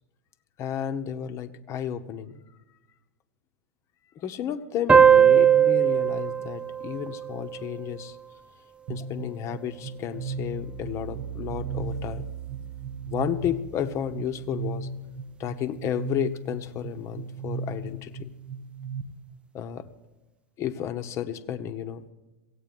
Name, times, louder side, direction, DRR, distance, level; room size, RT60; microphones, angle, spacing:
voice 1, 0.6-2.4 4.2-8.2 8.9-12.2 13.1-14.9 15.4-18.3 19.5-19.9 20.6-22.0, left 9 dB, 35° left, 8 dB, 1.0 m, -32 dB
sound 1, 4.9-8.0, right 8 dB, 15° right, 0.4 m, -20 dB
sound 2, 8.9-19.0, right 5 dB, 45° right, 1.4 m, -36 dB
16.0 x 8.7 x 9.1 m, 1.1 s
figure-of-eight pair, 95°, 8 cm